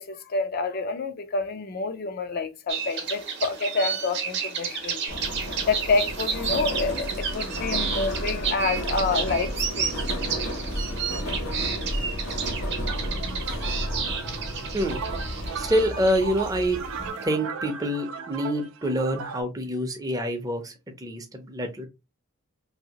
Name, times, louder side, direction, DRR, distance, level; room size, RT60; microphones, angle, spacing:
voice 1, 0.0-5.0 5.7-9.9, left 3 dB, 45° left, 0.4 m, -28 dB
sound 1, 2.7-17.2, right 6 dB, 55° right, 0.8 m, -32 dB
Subway metro underground, 5.1-17.1, equal, 70° left, 0.9 m, -32 dB
sound 2, 12.9-19.4, right 6 dB, 85° right, 0.5 m, -37 dB
voice 2, 15.6-20.7 21.0-21.9, equal, 15° right, 0.6 m, -26 dB
2.8 x 2.7 x 2.8 m
head